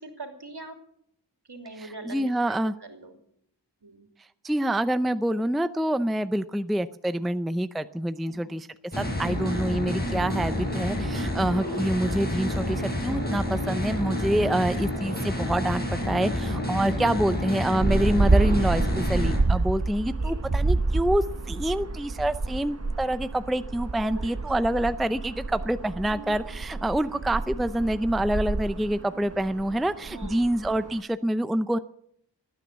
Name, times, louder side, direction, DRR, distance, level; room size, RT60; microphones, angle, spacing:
voice 1, 0.0-0.8 1.5-3.2 3.8-4.1 8.3-8.5 10.9-11.5 19.5-19.6 20.2-20.4 24.1-24.3 26.1-26.4 30.1-30.4, right 2 dB, 65° right, 4 dB, 3.1 m, -43 dB
voice 2, 1.8-2.7 4.4-8.7 9.0-31.8, right 1 dB, ahead, 12 dB, 0.5 m, -27 dB
sound 1, 8.9-19.4, left 1 dB, 20° left, 6.5 m, -29 dB
sound 2, 17.8-31.0, right 3 dB, 35° right, 1.0 m, -28 dB
19.0 x 9.4 x 7.4 m, 0.70 s
wide cardioid pair, 55°, 44 cm